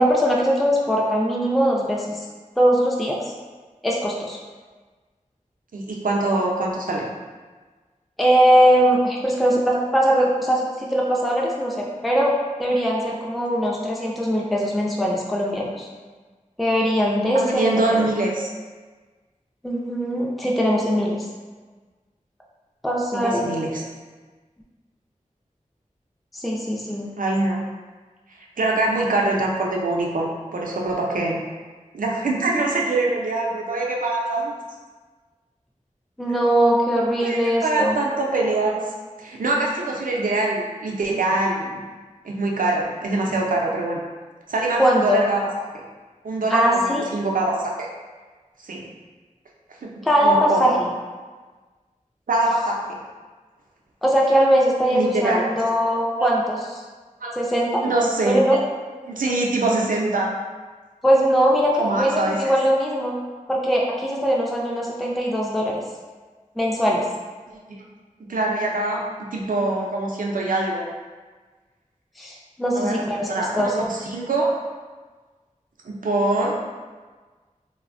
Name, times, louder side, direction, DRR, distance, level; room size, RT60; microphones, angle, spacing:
voice 1, 0.0-2.3 2.6-3.2 3.8-4.4 8.2-12.3 12.6-15.9 16.6-18.1 19.6-21.3 22.8-23.5 26.3-27.1 36.2-38.0 44.8-45.2 46.5-47.0 50.0-50.9 54.0-56.6 57.4-57.8 58.3-58.6 61.0-63.2 63.5-65.8 66.6-67.0 72.2-73.7, equal, ahead, -3 dB, 0.4 m, -21 dB
voice 2, 5.7-7.1 17.3-18.5 23.1-23.8 27.2-27.6 28.3-31.4 31.9-34.5 37.2-38.8 39.2-41.8 42.2-44.0 44.5-45.4 45.7-45.8 46.2-47.9 48.6-48.8 49.8-49.9 50.2-50.7 52.3-53.0 54.9-55.7 56.2-56.3 57.2-57.3 57.8-58.4 59.0-60.3 61.8-62.4 67.5-67.8 68.2-70.9 72.8-73.0 73.3-74.5 75.8-76.6, right 2 dB, 90° right, -2 dB, 0.4 m, -24 dB
3.3 x 2.1 x 2.4 m, 1.4 s
wide cardioid pair, 55°, 14 cm